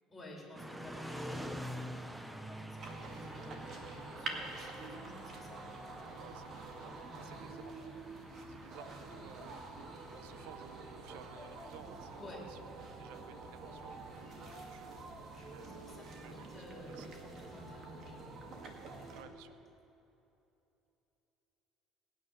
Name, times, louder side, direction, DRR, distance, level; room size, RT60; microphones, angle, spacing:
voice 1, 0.1-7.7 12.2-12.4 15.3-18.4, left 1 dB, 10° left, -3 dB, 4.0 m, -53 dB
sound 1, 0.5-14.6, equal, 5° right, 0.7 m, -49 dB
sound 2, 2.8-19.2, right 3 dB, 45° right, 2.0 m, -47 dB
voice 2, 6.2-8.2 8.5-17.1 19.1-19.6, right 9 dB, 90° right, 12 dB, 0.6 m, -57 dB
18.5 x 9.8 x 6.4 m, 2.9 s
cardioid pair, 130°, 0 cm